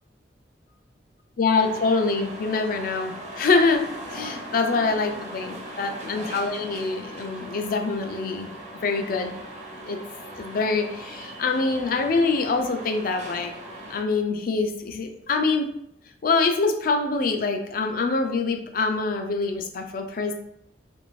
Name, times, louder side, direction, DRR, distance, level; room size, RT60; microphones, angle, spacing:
voice 1, 1.4-3.8 4.1-8.5 8.8-9.3 9.9-10.0 10.4-13.5 13.9-15.7 16.2-20.3, left 4 dB, 55° left, 6 dB, 0.4 m, -25 dB
sound 1, 1.5-14.0, right 1 dB, 40° right, 0.7 m, -39 dB
3.3 x 2.6 x 3.1 m, 0.76 s
head